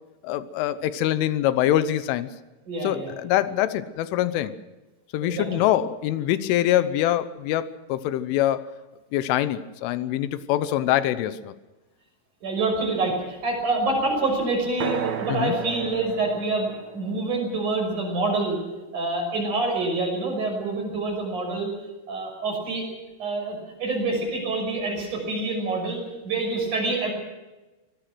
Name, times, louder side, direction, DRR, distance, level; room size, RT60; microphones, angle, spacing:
voice 1, 0.2-2.3 2.8-4.5 5.1-8.6 9.1-11.5 15.3-15.6, left 12 dB, 85° left, 13 dB, 3.4 m, -24 dB
voice 2, 2.7-3.1 5.2-5.6 10.6-10.7 12.4-18.6 18.9-21.7 22.1-22.9 23.2-27.1, right 2 dB, 40° right, 2 dB, 7.3 m, -27 dB
sound 1, 14.8-18.7, right 8 dB, 70° right, 1.6 m, -34 dB
24.0 x 19.5 x 6.2 m, 1.1 s
omnidirectional pair, 5.6 m